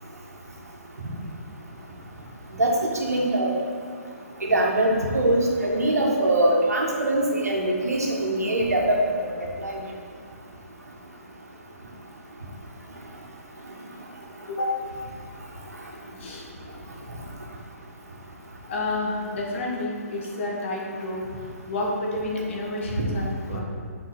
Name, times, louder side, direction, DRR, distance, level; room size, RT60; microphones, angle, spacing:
voice 1, 3.0-3.5 4.4-9.0 9.6-9.8, right 1 dB, 80° right, -1 dB, 1.6 m, -22 dB
voice 2, 18.7-21.2 21.7-23.6, left 2 dB, 50° left, -3 dB, 1.8 m, -29 dB
6.5 x 4.6 x 5.9 m, 2.1 s
figure-of-eight pair, 130°, 8 cm